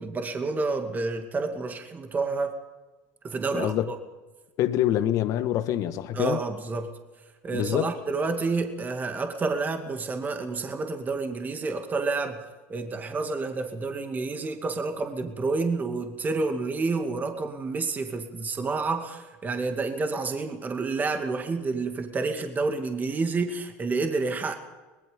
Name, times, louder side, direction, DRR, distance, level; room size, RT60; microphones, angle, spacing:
voice 1, 0.0-2.5 3.2-3.9 6.1-6.9 7.4-12.4 12.7-24.5, right 3 dB, 25° right, 2.4 m, -29 dB
voice 2, 3.5-3.9 4.6-6.4 7.5-7.9, left 12 dB, 60° left, 1.6 m, -25 dB
24.0 x 20.0 x 5.3 m
supercardioid pair, 100°, 7 cm